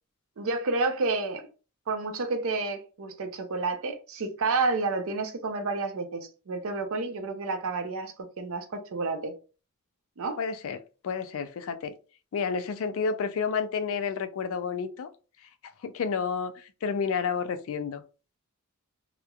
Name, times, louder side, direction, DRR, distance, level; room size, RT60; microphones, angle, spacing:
voice 1, 0.4-1.5 1.9-9.3 10.2-10.4, right 3 dB, 65° right, 0.5 m, -30 dB
voice 2, 10.4-10.8 11.0-11.9 12.3-15.1 15.8-18.0, left 5 dB, 65° left, 0.4 m, -30 dB
3.0 x 2.1 x 2.3 m
head